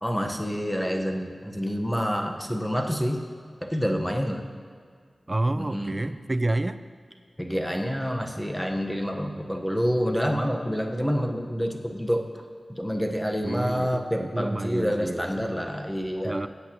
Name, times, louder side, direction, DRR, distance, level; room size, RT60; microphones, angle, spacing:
voice 1, 0.0-3.2 3.6-4.5 5.5-6.1 7.4-12.3 12.7-16.4, equal, 5° left, 3 dB, 1.2 m, -28 dB
voice 2, 5.3-6.8 13.4-15.6 16.2-16.5, right 2 dB, 35° right, 11 dB, 0.5 m, -29 dB
17.5 x 8.1 x 3.0 m, 2.1 s
wide cardioid pair, 55°, 0 cm